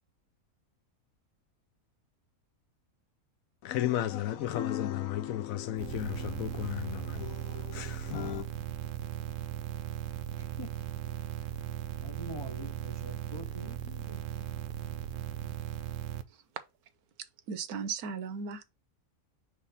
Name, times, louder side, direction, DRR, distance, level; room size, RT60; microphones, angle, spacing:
voice 1, 3.6-8.5, left 12 dB, 75° left, 1.0 m, -34 dB
sound 1, 5.8-16.2, right 12 dB, 65° right, 1.0 m, -38 dB
voice 2, 10.4-10.7 12.0-14.6, left 1 dB, 30° left, 0.5 m, -46 dB
voice 3, 17.5-18.6, right 5 dB, 85° right, 1.3 m, -36 dB
4.9 x 3.4 x 5.5 m
omnidirectional pair, 1.6 m